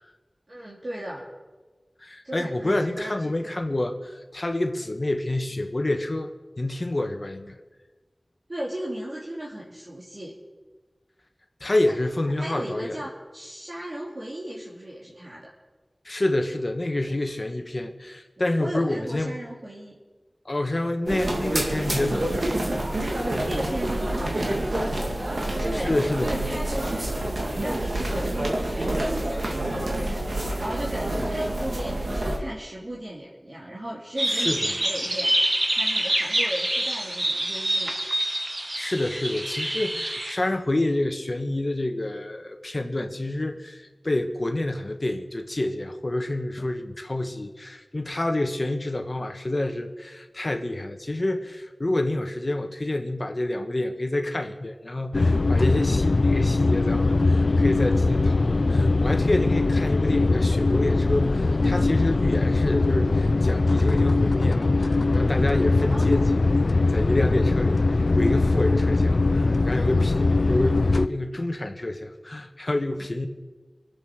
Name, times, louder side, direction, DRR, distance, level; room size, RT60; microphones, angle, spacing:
voice 1, 0.5-1.2 2.2-3.5 8.5-10.3 11.8-11.9 12.3-15.5 18.6-19.9 23.4-24.6 25.3-25.9 26.2-27.1 27.6-35.3 35.7-37.9 65.8-66.6, right 1 dB, 60° right, -5 dB, 3.1 m, -36 dB
voice 2, 2.0-7.6 11.6-13.0 16.0-19.4 20.4-22.4 25.7-26.3 34.3-34.7 38.8-73.3, left 1 dB, 50° left, 5 dB, 1.5 m, -28 dB
sound 1, 21.1-32.4, right 1 dB, 85° right, 2.5 m, -27 dB
sound 2, 34.2-40.3, right 1 dB, 40° right, 1.4 m, -26 dB
sound 3, 55.1-71.1, left 3 dB, 85° left, 0.4 m, -21 dB
24.5 x 8.5 x 6.3 m, 1.3 s
wide cardioid pair, 45°, 0 cm